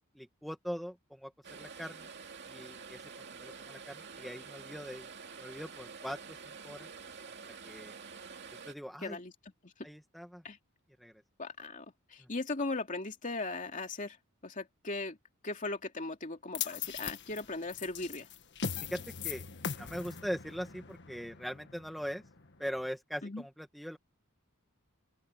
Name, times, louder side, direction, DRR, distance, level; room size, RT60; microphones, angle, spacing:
voice 1, 0.1-1.3 1.6-2.1 2.5-3.1 3.3-5.1 5.4-6.9 7.6-7.9 8.6-9.2 9.8-10.4 11.0-11.1 12.2-12.3 18.9-19.4 19.8-22.2 22.6-24.0, equal, ahead, 1.7 m, -41 dB
sound 1, 1.4-8.7, right 5 dB, 50° right, 2.5 m, -48 dB
voice 2, 9.0-9.3 9.6-9.7 10.4-10.6 11.4-11.8 12.1-14.2 14.4-15.2 15.4-18.3 23.2-23.4, left 3 dB, 35° left, 2.8 m, -38 dB
sound 2, 16.5-22.8, left 6 dB, 55° left, 1.6 m, -41 dB
open air
head